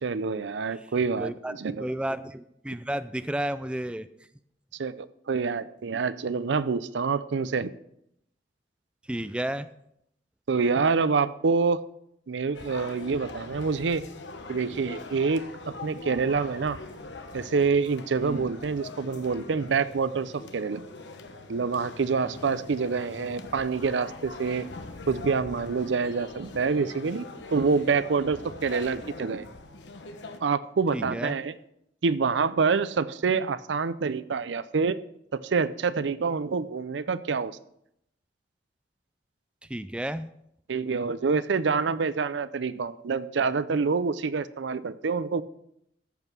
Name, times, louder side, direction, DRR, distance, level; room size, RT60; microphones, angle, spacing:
voice 1, 0.0-1.9 4.8-7.7 10.5-11.8 12.3-14.0 14.5-16.8 17.3-20.8 21.5-24.7 25.1-29.5 30.4-31.5 32.0-35.0 35.4-37.5 40.7-45.4, right 5 dB, 80° right, 16 dB, 0.5 m, -27 dB
voice 2, 1.2-1.5 1.8-4.1 9.1-9.7 18.2-18.4 30.9-31.4 39.7-40.3, right 1 dB, 5° right, 12 dB, 0.4 m, -32 dB
sound 1, 12.5-30.4, left 3 dB, 75° left, 1.1 m, -43 dB
14.0 x 5.4 x 6.1 m, 0.77 s
head